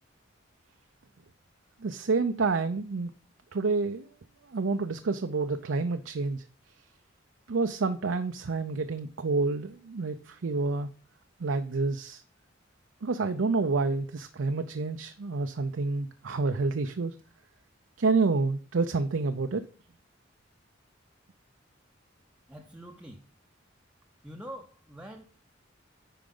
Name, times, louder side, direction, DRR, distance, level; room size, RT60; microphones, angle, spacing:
voice 1, 1.8-3.1 3.5-4.1 4.5-6.4 7.5-10.9 11.4-12.2 13.0-17.2 18.0-19.6, right 3 dB, 80° right, 0.6 m, -28 dB
voice 2, 22.5-23.3 24.2-25.2, equal, 5° right, 0.7 m, -44 dB
10.0 x 4.7 x 3.8 m
head